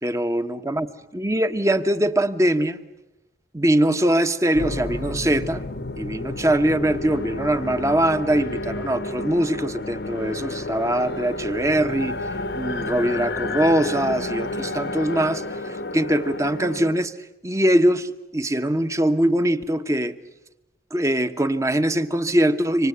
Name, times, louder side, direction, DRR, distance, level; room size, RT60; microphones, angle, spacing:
voice 1, 0.0-0.9 1.1-2.8 3.5-5.6 6.0-17.1 17.4-20.2 20.9-22.9, right 1 dB, 15° right, 10 dB, 1.1 m, -22 dB
sound 1, 4.5-16.9, left 2 dB, 60° left, 1.0 m, -30 dB
26.5 x 25.5 x 8.1 m, 0.94 s
head